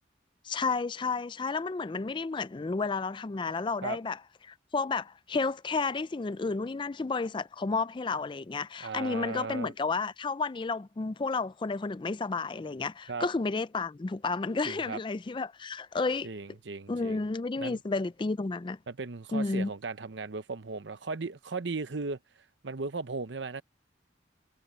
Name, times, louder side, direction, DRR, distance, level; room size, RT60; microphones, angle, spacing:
voice 1, 0.4-4.2 4.4-16.3 16.9-18.8 19.3-19.7, left 4 dB, 25° left, 0.4 m, -31 dB
voice 2, 8.8-9.7 13.1-13.3 14.7-15.0 16.2-17.2 17.6-17.8 18.9-22.2 22.6-23.6, right 4 dB, 75° right, 0.9 m, -36 dB
head